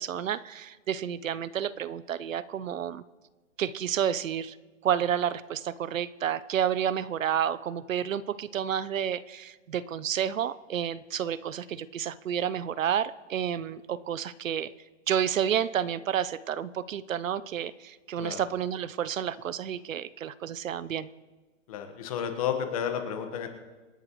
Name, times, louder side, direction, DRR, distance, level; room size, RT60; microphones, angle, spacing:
voice 1, 0.0-3.0 3.6-4.5 4.8-14.7 15.1-21.1, right 9 dB, 85° right, 17 dB, 0.7 m, -30 dB
voice 2, 21.7-23.5, left 8 dB, 30° left, 6 dB, 1.4 m, -32 dB
27.0 x 10.5 x 3.1 m, 1.3 s
hypercardioid pair, 165°, 38 cm